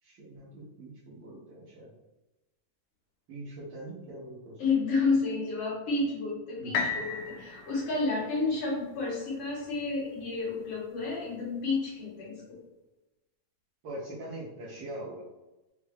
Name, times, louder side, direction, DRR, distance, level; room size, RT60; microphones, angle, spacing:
voice 1, 0.0-1.9 3.3-4.6 6.6-6.8 13.8-15.2, right 1 dB, 70° right, -10 dB, 1.1 m, -42 dB
voice 2, 4.6-12.4, left 3 dB, 55° left, -6 dB, 2.3 m, -30 dB
sound 1, 6.7-10.7 11.3-11.4, left 5 dB, 85° left, 2.1 m, -37 dB
5.1 x 2.3 x 3.5 m, 1.0 s
omnidirectional pair, 3.6 m